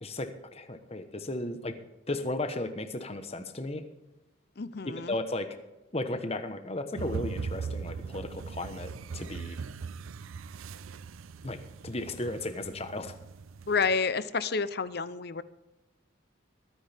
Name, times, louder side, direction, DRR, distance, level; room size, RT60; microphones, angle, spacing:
voice 1, 0.0-1.7 2.1-3.8 5.1-5.5 5.9-9.6 11.4-11.6 11.8-13.1, left 2 dB, 30° left, 8 dB, 1.1 m, -35 dB
voice 2, 4.6-5.2 13.7-15.4, left 5 dB, 50° left, 15 dB, 0.7 m, -29 dB
sound 1, 7.0-14.0, right 5 dB, 80° right, 0.5 m, -40 dB
22.5 x 10.0 x 3.5 m, 1.0 s
head